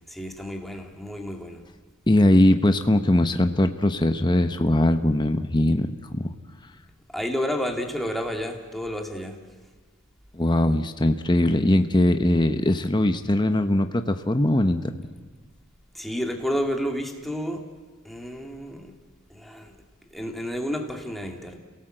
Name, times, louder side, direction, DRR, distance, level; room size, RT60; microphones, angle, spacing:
voice 1, 0.1-1.6 7.1-9.4 15.9-17.7 18.0-19.0 19.3-19.8 20.1-21.6, equal, ahead, 2 dB, 2.1 m, -30 dB
voice 2, 2.1-6.3 10.3-14.8, left 1 dB, 20° left, 8 dB, 0.8 m, -21 dB
28.0 x 17.5 x 7.8 m, 1.4 s
head